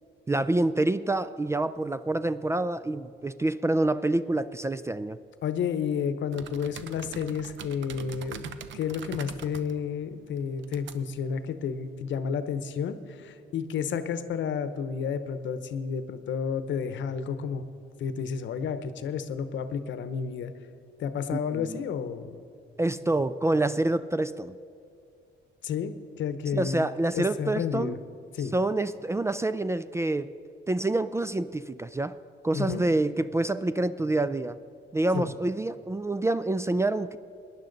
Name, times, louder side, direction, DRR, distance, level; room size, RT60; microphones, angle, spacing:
voice 1, 0.3-5.2 21.5-21.8 22.8-24.5 26.5-28.0 28.5-30.3 30.7-32.2 32.4-34.6 34.9-37.2, right 2 dB, 15° right, 14 dB, 0.3 m, -27 dB
voice 2, 5.4-17.6 18.0-20.5 21.0-22.4 25.6-26.8 27.1-28.0 28.3-28.5 32.5-32.8 35.1-35.3, left 7 dB, 70° left, 11 dB, 0.9 m, -31 dB
sound 1, 6.3-11.9, right 8 dB, 70° right, 0.7 m, -44 dB
18.5 x 10.5 x 4.0 m, 2.5 s
cardioid pair, 90°, 20 cm